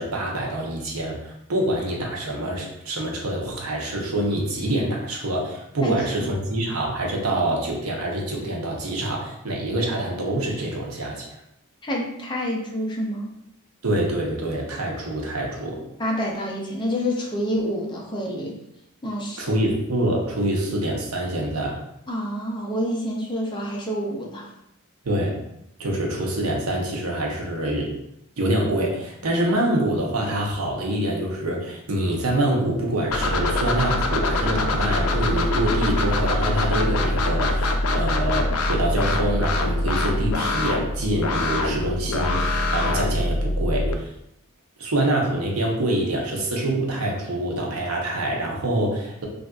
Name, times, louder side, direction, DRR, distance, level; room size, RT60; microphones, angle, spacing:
voice 1, 0.0-11.4 13.8-15.8 19.4-21.8 25.0-25.4 25.8-27.9 28.4-44.1 44.8-49.3, right 1 dB, 75° right, -1 dB, 0.7 m, -25 dB
voice 2, 11.8-13.3 16.0-18.6 19.0-19.6 22.1-24.5, equal, 20° left, -2 dB, 0.5 m, -27 dB
sound 1, 33.1-43.9, left 2 dB, 80° left, 0.4 m, -23 dB
3.4 x 2.5 x 2.3 m, 0.80 s
head